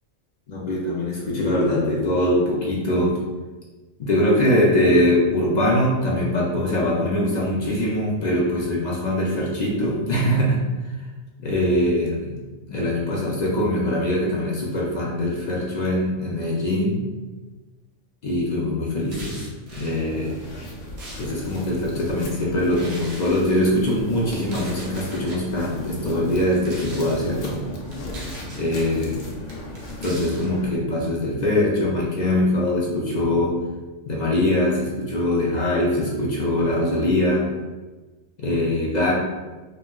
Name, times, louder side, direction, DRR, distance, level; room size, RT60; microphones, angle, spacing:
voice 1, 0.5-3.2 4.0-10.6 11.4-12.4 12.7-17.0 18.2-19.4 19.7-20.4 21.2-27.6 28.5-29.2 30.0-33.6 34.1-37.5 38.4-39.1, left 1 dB, 60° left, -4 dB, 0.4 m, -22 dB
sound 1, 19.0-20.0 20.6-21.6 22.7-23.4 24.4-25.4 26.4-27.2 27.9-28.7 29.5-30.5, right 1 dB, 65° right, 1.0 m, -40 dB
sound 2, 19.9-30.7, left 1 dB, 80° left, 1.0 m, -36 dB
4.0 x 2.2 x 2.3 m, 1.2 s
omnidirectional pair, 1.2 m